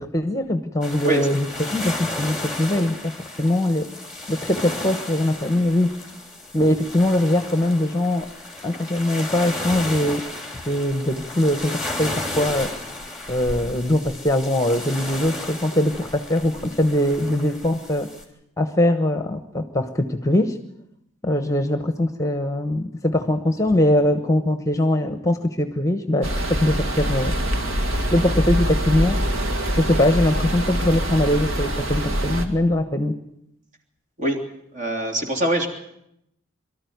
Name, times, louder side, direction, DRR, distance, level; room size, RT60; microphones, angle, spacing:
voice 1, 0.0-1.5 1.7-3.9 4.3-5.9 6.5-8.3 8.6-10.2 10.7-12.7 13.3-18.1 18.6-20.6 21.2-27.3 27.7-29.2 29.7-33.1, left 1 dB, 15° left, 8 dB, 1.1 m, -22 dB
sound 1, 0.8-18.2, left 1 dB, 5° right, 3.2 m, -34 dB
sound 2, 26.2-32.4, equal, 80° right, 2.2 m, -24 dB
voice 2, 34.7-35.7, right 1 dB, 40° right, 3 dB, 3.1 m, -23 dB
23.5 x 13.5 x 9.4 m, 0.80 s
head